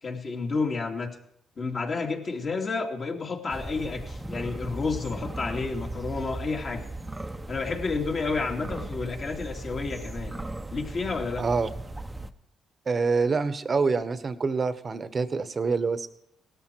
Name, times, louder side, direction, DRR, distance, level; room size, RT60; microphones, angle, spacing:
voice 1, 0.0-1.2 1.6-6.9 7.5-10.3 10.7-11.5, left 4 dB, 45° left, 1 dB, 2.6 m, -30 dB
sound 1, 3.5-12.3, right 2 dB, 15° right, 0.9 m, -37 dB
voice 2, 11.4-11.7 12.9-16.1, right 4 dB, 35° right, 12 dB, 1.2 m, -26 dB
18.0 x 13.5 x 4.7 m, 0.75 s
cardioid pair, 90°, 0 cm